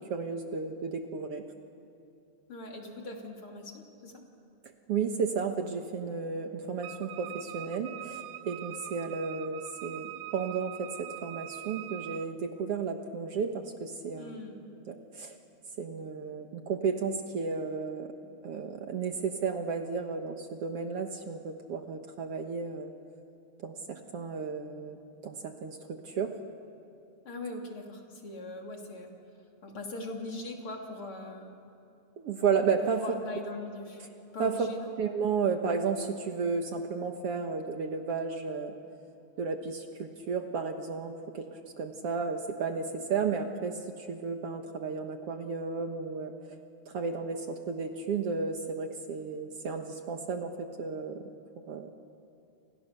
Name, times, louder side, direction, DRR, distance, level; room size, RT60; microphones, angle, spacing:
voice 1, 0.0-1.4 4.9-14.4 14.9-15.3 15.8-18.1 18.4-22.9 23.6-25.0 25.2-26.3 32.2-33.0 34.4-34.7 35.0-38.7 39.4-41.5 41.8-43.8 44.1-46.5 46.9-51.2 51.7-51.9, right 5 dB, 60° right, 5 dB, 2.1 m, -33 dB
voice 2, 2.5-4.2 14.2-14.6 27.3-29.1 29.6-31.5 33.0-34.0 34.3-34.9, left 2 dB, 45° left, 1 dB, 3.6 m, -40 dB
Wind instrument woodwind instrument, 6.8-12.3, right 14 dB, 90° right, 2.3 m, -43 dB
30.0 x 27.0 x 6.8 m, 2.7 s
omnidirectional pair, 3.4 m